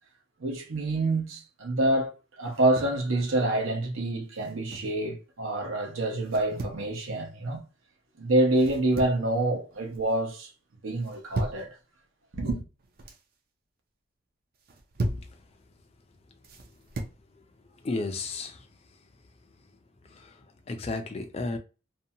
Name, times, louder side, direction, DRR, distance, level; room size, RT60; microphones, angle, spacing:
voice 1, 0.4-7.6 8.2-10.5 10.8-11.7 12.3-12.6, right 2 dB, 75° right, 0.8 m, -27 dB
sound 1, 2.5-3.0 4.3-5.0 6.2-6.8 8.5-9.3 9.7-10.1 11.0-11.7 12.7-13.2 14.5-15.3 16.4-17.2, right 2 dB, 45° right, 0.4 m, -36 dB
voice 2, 17.8-18.6 20.1-20.3 20.7-21.6, left 3 dB, 30° left, 0.3 m, -32 dB
2.6 x 2.2 x 2.7 m
head